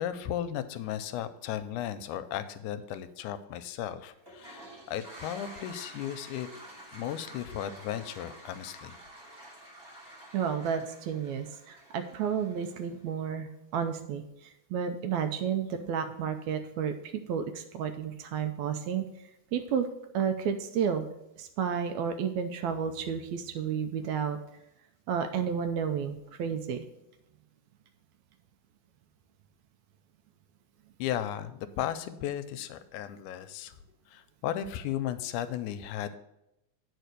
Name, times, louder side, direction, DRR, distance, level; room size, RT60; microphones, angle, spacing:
voice 1, 0.0-6.5 6.9-9.0 31.0-33.7 34.1-36.2, left 10 dB, 85° left, 11 dB, 2.0 m, -35 dB
Toilet flush, 4.2-13.1, right 1 dB, 20° right, 2.9 m, -49 dB
voice 2, 10.3-16.9 17.3-19.0 19.5-19.9 20.1-21.1 21.4-24.4 25.1-26.8, right 7 dB, 80° right, 7 dB, 1.8 m, -31 dB
9.1 x 4.6 x 6.6 m, 0.86 s
omnidirectional pair, 3.6 m